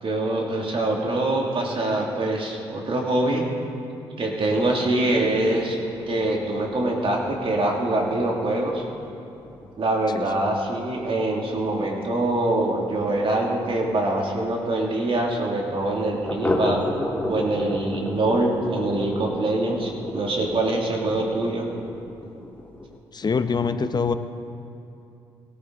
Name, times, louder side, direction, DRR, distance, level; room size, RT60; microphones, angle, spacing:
voice 1, 0.0-3.5 4.2-5.8 6.1-8.8 9.8-16.8 17.2-21.7, right 2 dB, 50° right, -1 dB, 2.7 m, -24 dB
sound 1, 4.5-13.8 14.1-14.2 14.5-14.6 15.0-15.1 16.2-23.0, left 1 dB, 10° left, 2.7 m, -34 dB
voice 2, 23.1-24.1, left 5 dB, 35° left, 10 dB, 0.8 m, -24 dB
18.0 x 13.0 x 4.0 m, 2.7 s
supercardioid pair, 55°, 12 cm